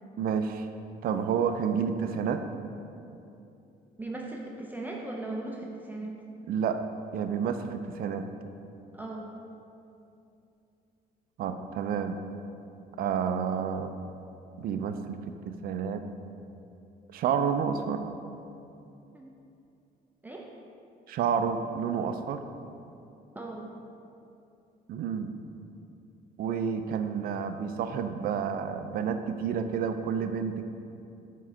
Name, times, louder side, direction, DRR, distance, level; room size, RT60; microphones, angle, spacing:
voice 1, 0.2-0.7 1.0-2.4 6.5-6.8 7.1-8.3 11.4-12.2 13.0-13.9 14.6-15.2 15.5-16.0 17.1-18.0 21.1-22.4 24.9-25.3 26.4-30.6, right 7 dB, 60° right, 8 dB, 0.4 m, -29 dB
voice 2, 4.0-6.1 8.9-9.3 19.1-19.3 20.2-20.5 23.3-23.7, right 2 dB, 10° right, -2 dB, 0.5 m, -38 dB
7.2 x 3.7 x 4.3 m, 2.7 s
cardioid pair, 110°, 17 cm